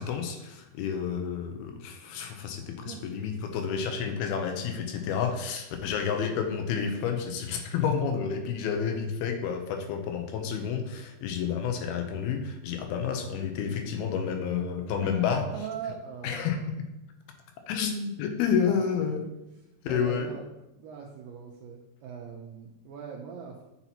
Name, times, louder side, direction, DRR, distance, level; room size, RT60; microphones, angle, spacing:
voice 1, 0.0-15.4 16.2-16.6 17.7-19.2 19.8-20.3, left 7 dB, 80° left, 5 dB, 2.5 m, -30 dB
voice 2, 2.8-3.2 15.1-16.6 18.6-19.2 19.9-20.4 20.7-23.6, right 7 dB, 85° right, 0 dB, 2.0 m, -41 dB
8.0 x 5.8 x 2.9 m, 0.94 s
omnidirectional pair, 4.6 m